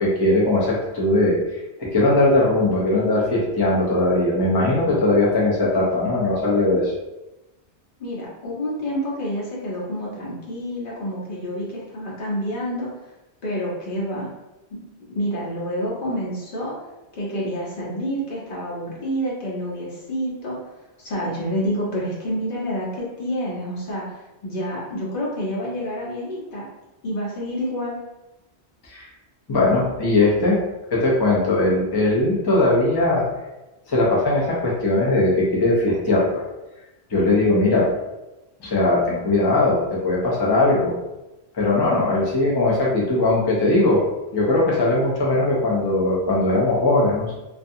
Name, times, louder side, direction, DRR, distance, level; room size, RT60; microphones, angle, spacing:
voice 1, 0.0-6.9 28.9-29.1 29.5-30.6 30.9-33.2 33.9-36.4 37.1-37.9 38.6-40.9 41.5-44.0 44.3-47.3, left 2 dB, 30° left, -5 dB, 0.5 m, -19 dB
voice 2, 8.0-12.9 13.4-14.3 14.7-16.7 17.1-20.5 21.0-26.6 27.0-28.0, equal, 55° left, -6 dB, 1.0 m, -28 dB
2.5 x 2.2 x 2.6 m, 1.0 s
omnidirectional pair, 1.1 m